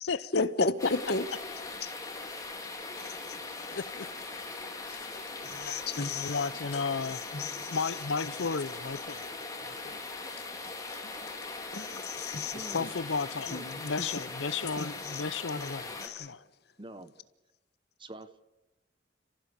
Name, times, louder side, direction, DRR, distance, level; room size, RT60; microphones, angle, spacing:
voice 1, 0.0-1.3 1.8-1.9 3.0-3.4 5.4-6.5 7.3-7.8 10.6-11.2 11.7-12.9 13.5-14.2 14.8-15.2 15.5-15.7 16.0-16.3, left 3 dB, 60° left, 1.4 m, -34 dB
sound 1, 0.8-16.1, left 3 dB, 20° left, 3.6 m, -40 dB
voice 2, 3.7-4.1 4.8-5.1 6.1-7.2 7.7-10.0 12.7-13.5 13.8-16.4, left 4 dB, 85° left, 0.7 m, -34 dB
voice 3, 12.5-13.0 13.5-13.7 16.8-17.1 18.0-18.4, right 1 dB, 25° right, 1.3 m, -45 dB
29.5 x 15.5 x 8.4 m
head